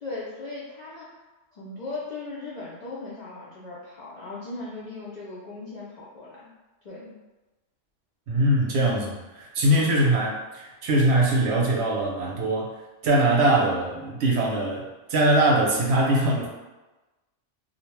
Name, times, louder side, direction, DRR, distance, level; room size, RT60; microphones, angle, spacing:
voice 1, 0.0-1.2 1.5-6.4 6.8-7.1 9.8-10.1, left 3 dB, 65° left, -7 dB, 0.4 m, -38 dB
voice 2, 8.3-12.7 13.0-16.5, right 1 dB, 65° right, -2 dB, 0.8 m, -22 dB
2.6 x 2.1 x 3.0 m, 1.1 s
omnidirectional pair, 1.3 m